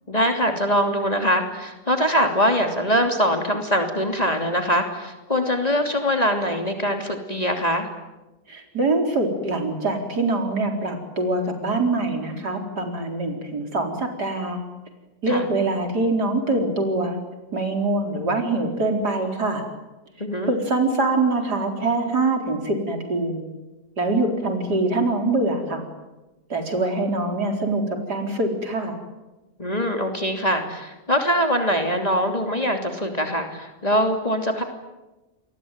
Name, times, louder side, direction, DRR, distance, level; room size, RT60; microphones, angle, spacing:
voice 1, 0.1-7.9 15.3-15.4 20.2-20.5 29.6-34.6, equal, 20° left, 4 dB, 3.1 m, -23 dB
voice 2, 8.5-14.6 15.2-17.2 17.5-19.6 20.5-23.5 24.0-25.8 26.5-27.8 28.1-29.0, right 2 dB, 70° right, 3 dB, 4.8 m, -24 dB
28.0 x 22.0 x 9.1 m, 1.1 s
omnidirectional pair, 1.8 m